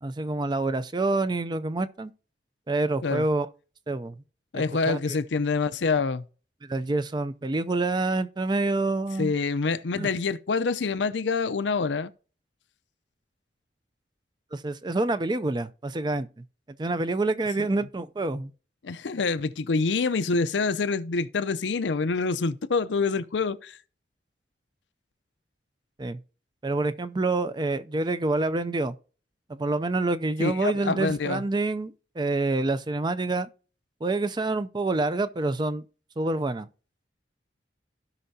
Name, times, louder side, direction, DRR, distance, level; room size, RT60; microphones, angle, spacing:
voice 1, 0.0-2.1 2.7-3.5 3.9-4.2 4.5-5.2 6.6-9.3 10.0-10.1 14.5-16.4 16.8-18.5 26.0-26.2 26.6-29.0 29.5-33.5 34.0-35.8 36.2-36.7, right 2 dB, 25° right, 0.4 m, -27 dB
voice 2, 4.5-6.2 9.2-12.1 17.6-17.7 18.8-23.8 30.4-31.4, left 4 dB, 90° left, 0.6 m, -26 dB
16.0 x 5.6 x 2.7 m
head